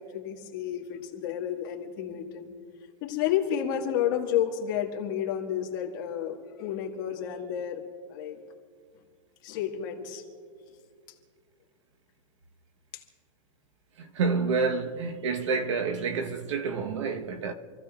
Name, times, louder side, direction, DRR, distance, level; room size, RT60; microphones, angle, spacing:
voice 1, 0.0-2.5 3.0-7.8 8.1-8.4 9.4-10.2, left 9 dB, 35° left, 1.7 m, -31 dB
voice 2, 14.0-17.5, right 4 dB, 60° right, 1.1 m, -28 dB
28.0 x 15.0 x 2.4 m
supercardioid pair, 175°, 17 cm